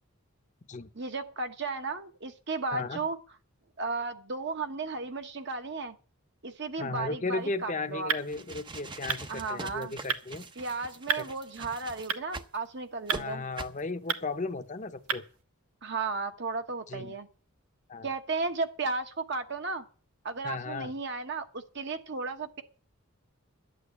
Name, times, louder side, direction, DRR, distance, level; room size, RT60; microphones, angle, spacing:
voice 1, 0.9-3.2 3.8-5.9 6.4-8.1 9.3-9.9 10.6-13.5 15.8-17.3 18.0-19.9 20.2-22.6, right 3 dB, 50° right, 1.2 m, -34 dB
voice 2, 2.7-3.0 6.8-10.4 11.2-11.3 13.1-15.2 16.9-17.1 17.9-18.1 20.4-20.9, left 3 dB, 35° left, 0.8 m, -35 dB
sound 1, 7.4-15.4, right 6 dB, 90° right, 1.3 m, -37 dB
sound 2, 8.2-12.6 13.1-13.2 13.6-13.8, right 3 dB, 20° right, 0.6 m, -43 dB
12.5 x 8.7 x 7.2 m
head